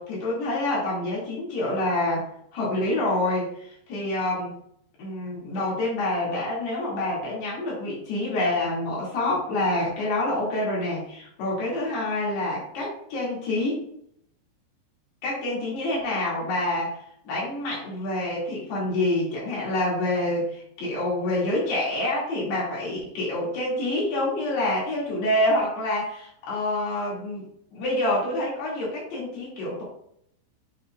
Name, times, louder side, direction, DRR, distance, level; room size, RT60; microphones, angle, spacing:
voice 1, 0.0-2.2 2.5-4.5 5.0-13.8 15.2-17.0 17.3-27.5 27.7-29.8, left 1 dB, 60° left, -6 dB, 4.4 m, -27 dB
9.0 x 6.7 x 2.5 m, 0.71 s
omnidirectional pair, 5.7 m